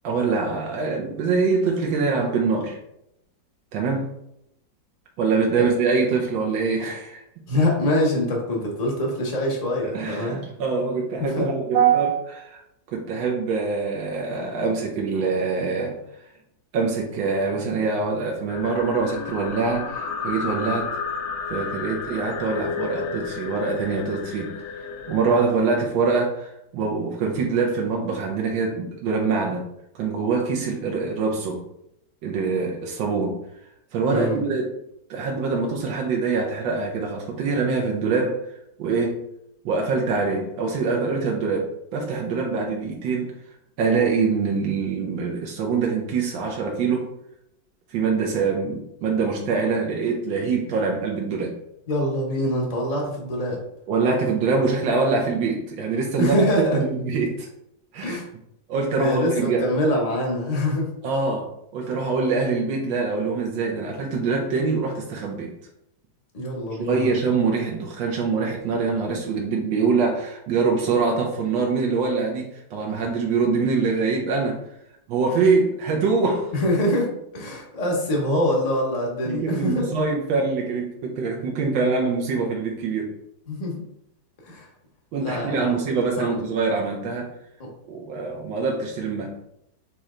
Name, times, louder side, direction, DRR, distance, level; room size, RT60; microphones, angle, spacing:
voice 1, 0.0-2.8 3.7-4.1 5.2-7.2 9.9-12.6 12.9-16.0 16.7-20.9 21.5-29.7 29.9-31.6 32.2-33.4 33.9-34.7 35.1-38.4 38.8-39.2 39.6-43.3 43.8-47.1 47.9-51.6 53.9-57.5 57.9-58.2 58.7-59.6 61.0-65.5 66.8-74.6 75.1-76.5 79.3-83.1 85.1-87.3 87.9-89.3, right 4 dB, 80° right, 0 dB, 1.5 m, -24 dB
voice 2, 7.5-10.4 11.2-11.5 34.1-34.4 51.9-53.6 56.2-56.8 58.0-58.3 59.0-60.9 66.3-67.1 76.5-79.9 83.5-83.8 84.4-84.7 85.2-85.8 86.2-86.5 87.6-87.7, left 1 dB, 30° left, -1 dB, 0.7 m, -24 dB
sound 1, 18.5-25.4, left 5 dB, 75° left, 1.1 m, -32 dB
4.2 x 3.2 x 3.7 m, 0.79 s
omnidirectional pair, 2.0 m